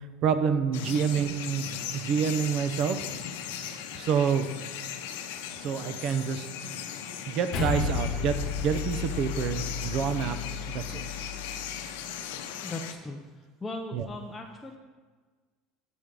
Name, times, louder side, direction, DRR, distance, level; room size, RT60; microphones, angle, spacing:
voice 1, 0.2-3.0 4.0-4.5 5.6-6.5 7.3-10.4 10.7-11.0 13.9-14.1, right 7 dB, 45° right, 10 dB, 0.6 m, -27 dB
sound 1, 0.7-12.9, left 9 dB, 85° left, 0.7 m, -38 dB
sound 2, 7.5-12.1, left 5 dB, 40° left, 1.2 m, -33 dB
voice 2, 12.6-13.2 13.6-14.8, left 2 dB, 10° left, 1 dB, 0.6 m, -38 dB
7.1 x 6.2 x 5.1 m, 1.4 s
cardioid pair, 155°, 0 cm